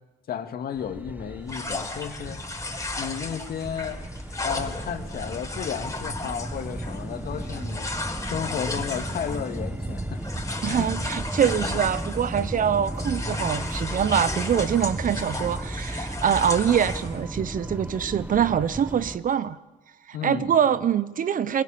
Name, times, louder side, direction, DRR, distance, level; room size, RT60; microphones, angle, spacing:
voice 1, 0.3-2.4 3.0-4.0 4.4-7.9 8.2-10.2 10.6-10.9 20.1-20.6, left 8 dB, 60° left, 7 dB, 2.2 m, -33 dB
sound 1, 0.8-19.2, right 1 dB, 10° right, 1.7 m, -34 dB
sound 2, 1.5-12.6 12.9-17.2, left 2 dB, 20° left, 4.8 m, -35 dB
voice 2, 10.6-19.6 20.1-21.6, right 8 dB, 50° right, 16 dB, 1.1 m, -24 dB
23.5 x 21.5 x 7.3 m, 1.1 s
hypercardioid pair, 50°, 17 cm